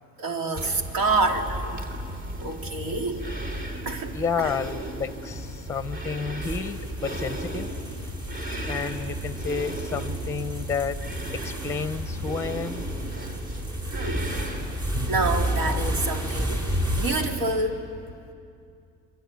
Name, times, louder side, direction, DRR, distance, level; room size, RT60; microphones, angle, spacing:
voice 1, 0.2-1.9 2.4-3.2 3.8-4.5 13.9-14.2 15.1-16.6 17.0-17.8, right 3 dB, 85° right, 4 dB, 2.8 m, -27 dB
sound 1, 0.5-17.4, right 1 dB, 40° right, 3.2 m, -33 dB
voice 2, 4.1-7.7 8.7-11.0 11.3-12.8, left 5 dB, 10° left, 12 dB, 0.7 m, -30 dB
sound 2, 6.4-17.2, right 1 dB, 15° right, 4.1 m, -35 dB
26.0 x 23.5 x 9.4 m, 2.5 s
cardioid pair, 155°, 29 cm